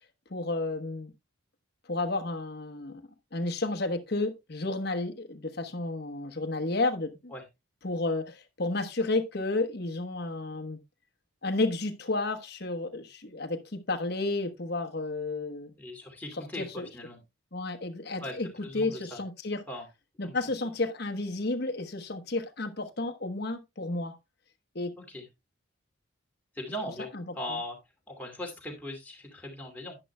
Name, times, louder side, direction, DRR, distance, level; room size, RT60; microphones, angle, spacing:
voice 1, 0.3-1.1 1.9-3.0 3.3-7.3 7.8-10.8 11.4-15.7 16.6-16.9 17.5-18.5 18.7-19.6 20.2-24.1 24.7-24.9 27.1-27.2, left 2 dB, 50° left, 1.1 m, -31 dB
voice 2, 15.8-17.2 18.2-18.3 18.6-19.2 19.7-19.8 20.2-20.4 25.0-25.2 26.5-27.8 28.1-30.0, left 1 dB, 10° left, 2.4 m, -39 dB
10.5 x 10.0 x 2.2 m
head